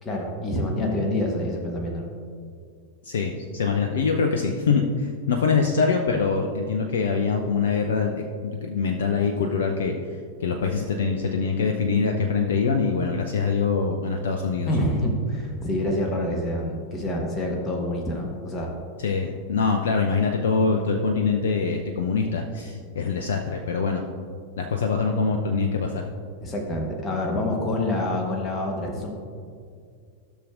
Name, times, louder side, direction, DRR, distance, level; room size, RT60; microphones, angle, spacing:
voice 1, 0.0-2.1 14.7-18.7 26.4-29.1, left 1 dB, 25° left, 1 dB, 1.1 m, -27 dB
voice 2, 3.0-9.9 10.4-14.7 19.0-24.0 24.6-26.1, left 5 dB, 60° left, 3 dB, 0.5 m, -24 dB
13.0 x 6.2 x 2.5 m, 2.2 s
figure-of-eight pair, 90°, 0 cm